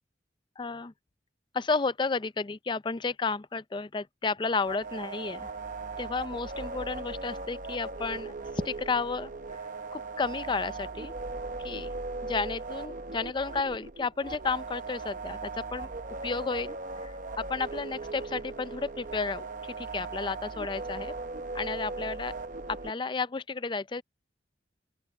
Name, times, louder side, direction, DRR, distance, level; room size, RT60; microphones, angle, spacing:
voice 1, 0.6-0.9 1.5-5.5 6.0-9.6 9.9-11.1 11.6-15.9 16.2-21.1 21.5-22.3 22.7-24.0, left 4 dB, 25° left, 0.4 m, -32 dB
sound 1, 4.6-22.9, right 3 dB, 45° right, 0.8 m, -38 dB
open air
head